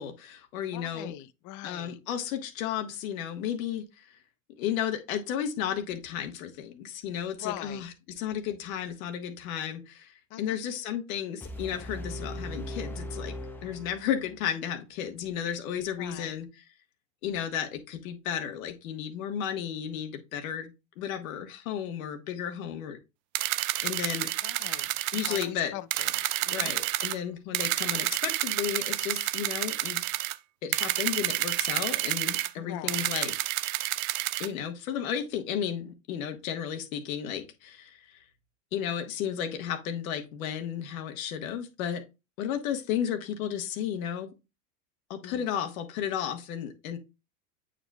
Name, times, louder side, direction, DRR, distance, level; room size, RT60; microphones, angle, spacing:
voice 1, 0.0-1.1 1.6-4.1 4.6-7.9 8.2-13.4 13.6-16.6 17.2-20.7 21.0-23.0 23.8-24.6 25.1-25.7 26.5-30.0 30.6-33.3 34.4-38.2 38.7-42.0 42.4-44.3 45.1-47.0, left 9 dB, 75° left, 1.5 m, -33 dB
voice 2, 0.7-2.0 7.4-7.8 10.3-10.6 16.0-16.3 24.4-26.8 32.6-33.1 45.2-45.5, left 13 dB, 45° left, 0.7 m, -42 dB
sound 1, 11.4-14.4, equal, 5° left, 0.9 m, -39 dB
sound 2, 23.3-25.5 25.9-27.2 27.5-30.4 30.7-32.5 32.9-34.5, right 17 dB, 75° right, 0.6 m, -29 dB
8.5 x 5.1 x 2.3 m
supercardioid pair, 110°, 42 cm